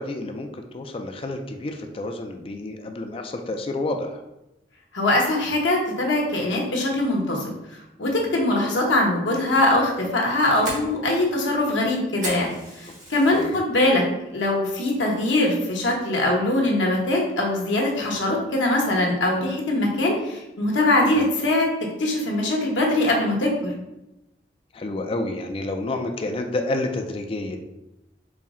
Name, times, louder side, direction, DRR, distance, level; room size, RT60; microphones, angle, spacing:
voice 1, 0.0-4.2 13.3-13.6 21.0-21.2 24.7-27.6, left 2 dB, 30° left, 5 dB, 0.3 m, -29 dB
voice 2, 4.9-7.5 8.0-14.0 14.3-21.7 22.0-23.7, left 1 dB, 80° left, -1 dB, 0.9 m, -22 dB
Fire, 10.2-13.6 14.0-14.4 14.8-14.9 15.4-15.8, right 1 dB, 40° right, 1.2 m, -36 dB
4.2 x 2.0 x 3.5 m, 0.92 s
head